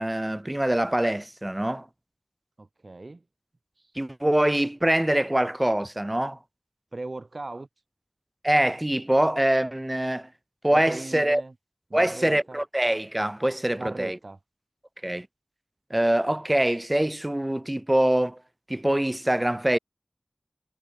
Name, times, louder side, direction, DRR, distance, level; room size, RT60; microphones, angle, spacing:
voice 1, 0.0-1.9 4.0-6.4 8.4-10.3 10.6-11.4 11.9-14.2 15.0-15.3 15.9-18.4 18.7-19.8, right 1 dB, 20° right, 0.7 m, -24 dB
voice 2, 2.6-3.2 3.8-3.9 6.9-7.7 10.7-11.5 11.9-12.6 13.8-14.4, right 2 dB, 60° right, 4.4 m, -38 dB
wide cardioid pair, 55°, 0 cm